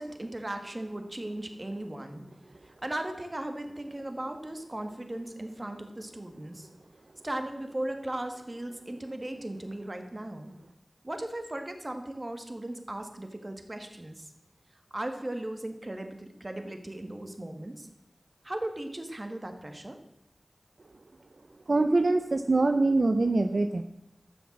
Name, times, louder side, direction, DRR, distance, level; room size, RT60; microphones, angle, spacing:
voice 1, 0.0-2.2 2.6-6.7 7.2-10.5 11.0-14.3 14.9-17.9 18.4-20.0, right 1 dB, 35° right, 6 dB, 2.0 m, -37 dB
voice 2, 21.7-23.8, right 2 dB, 65° right, 7 dB, 0.7 m, -24 dB
12.5 x 7.3 x 7.4 m, 0.84 s
wide cardioid pair, 45°, 0 cm